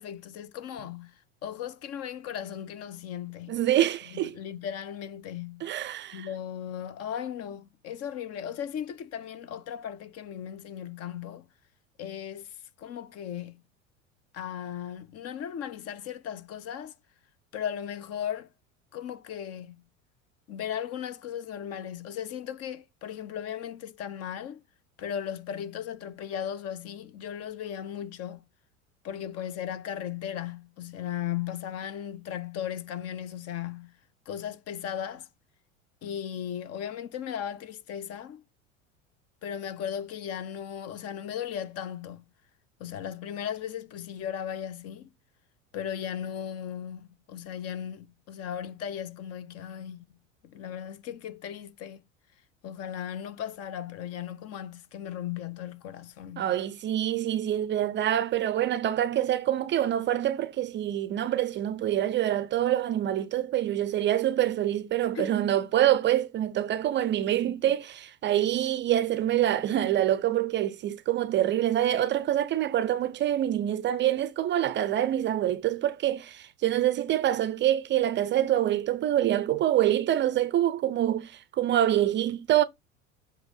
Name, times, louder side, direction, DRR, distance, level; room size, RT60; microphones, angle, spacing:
voice 1, 0.0-3.6 4.1-5.7 6.1-11.5 12.0-13.6 14.3-16.9 17.5-18.5 18.9-19.8 20.5-24.6 25.0-28.4 29.0-33.9 34.3-35.3 36.0-38.4 39.4-42.2 42.8-45.1 45.7-50.0 50.4-52.0 52.6-56.5 65.1-65.3 67.4-67.5, left 9 dB, 40° left, 0.7 m, -37 dB
voice 2, 3.5-4.3 5.6-6.3 56.4-82.6, right 12 dB, 30° right, 0.5 m, -26 dB
7.8 x 2.6 x 5.4 m
figure-of-eight pair, 75°, 40 cm